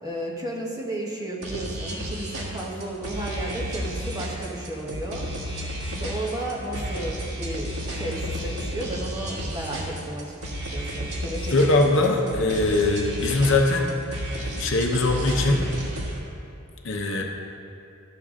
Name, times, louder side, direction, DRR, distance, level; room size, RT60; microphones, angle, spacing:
voice 1, 0.0-10.3 10.7-11.6 12.0-12.5 13.1-13.3, right 1 dB, 15° right, -3 dB, 1.1 m, -33 dB
sound 1, 1.4-16.2, equal, 85° right, 1.6 m, -32 dB
voice 2, 11.5-13.9 14.4-15.7 16.8-17.2, left 2 dB, 60° left, 1 dB, 0.8 m, -21 dB
12.5 x 6.7 x 3.7 m, 2.6 s
head